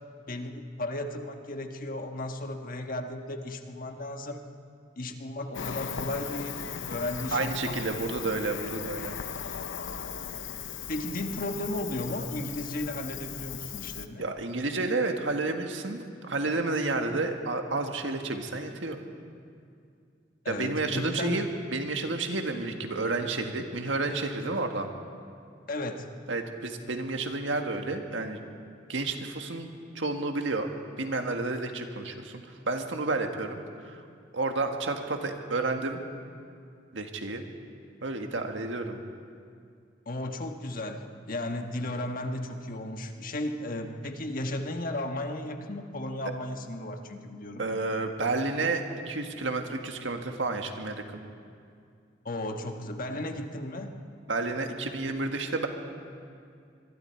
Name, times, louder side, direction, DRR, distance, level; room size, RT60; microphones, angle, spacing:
voice 1, 0.3-4.4 5.0-6.6 6.9-8.0 10.9-14.3 20.4-21.4 25.7-26.1 40.1-47.6 52.2-54.0, left 1 dB, 50° left, 5 dB, 1.4 m, -35 dB
Cricket, 5.5-14.1, left 7 dB, 90° left, 0.7 m, -38 dB
voice 2, 7.3-9.1 14.2-19.0 20.5-24.9 26.3-28.4 28.9-29.7 29.9-30.7 31.0-34.0 34.3-36.0 36.9-37.4 38.0-39.0 47.6-51.0 54.3-55.7, right 3 dB, 85° right, 5 dB, 1.7 m, -31 dB
25.0 x 22.5 x 4.6 m, 2.3 s
head